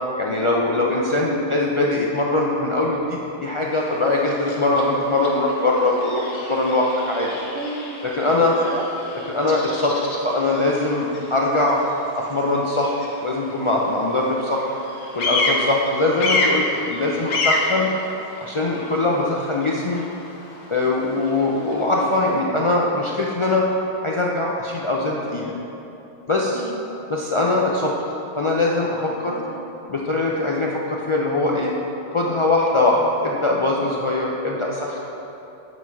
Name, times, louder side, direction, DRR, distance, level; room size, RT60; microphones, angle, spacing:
voice 1, 0.2-7.3 8.0-8.5 9.3-10.0 10.2-11.8 12.2-14.7 15.1-17.9 18.4-20.0 20.7-23.7 24.0-25.5 26.3-26.6 27.1-27.9 28.4-29.4 29.9-31.7 32.1-35.0, left 2 dB, 50° left, -3 dB, 0.3 m, -22 dB
voice 2, 1.2-1.5 7.3-7.9 8.4-8.8 16.9-17.4 26.3-26.8 29.1-29.6, right 2 dB, 65° right, 2 dB, 0.8 m, -35 dB
Bird vocalization bird call bird song, 3.6-22.4, left 2 dB, 90° left, 1.1 m, -30 dB
7.2 x 3.8 x 4.6 m, 3.0 s
omnidirectional pair, 1.1 m